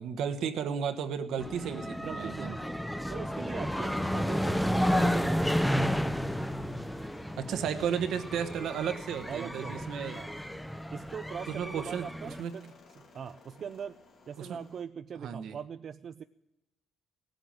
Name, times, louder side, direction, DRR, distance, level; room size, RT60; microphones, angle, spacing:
voice 1, 0.0-2.5 7.4-10.2 11.5-12.6 14.4-14.6 15.2-15.6, right 7 dB, 80° right, 9 dB, 1.1 m, -34 dB
sound 1, 1.4-12.4, equal, 5° left, 0.7 m, -32 dB
voice 2, 2.0-5.8 9.3-9.9 10.1-10.4 10.9-12.6 13.0-14.0 14.3-16.2, right 7 dB, 55° right, 10 dB, 0.4 m, -41 dB
sound 2, 4.9-14.8, left 4 dB, 65° left, 2.8 m, -58 dB
17.0 x 7.8 x 8.8 m, 0.95 s
cardioid pair, 90°, 0 cm